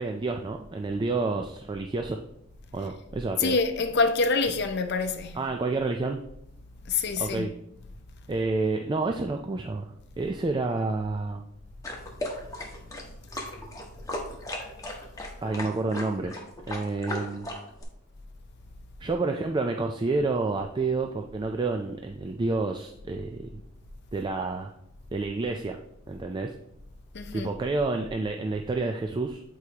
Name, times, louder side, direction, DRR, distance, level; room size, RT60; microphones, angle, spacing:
voice 1, 0.0-2.2 2.7-3.6 5.3-6.2 7.2-7.5 8.3-9.9 10.2-11.5 15.4-16.4 16.7-17.5 19.0-23.5 24.1-24.7 25.1-25.8 26.1-26.5 27.3-29.4, right 3 dB, 25° right, 0.3 m, -29 dB
voice 2, 3.4-5.5 6.8-7.6 14.3-14.4 27.1-27.5, left 4 dB, 55° left, 0.6 m, -26 dB
sound 1, 11.8-17.8, left 1 dB, 15° left, 1.1 m, -36 dB
8.1 x 4.6 x 2.9 m
head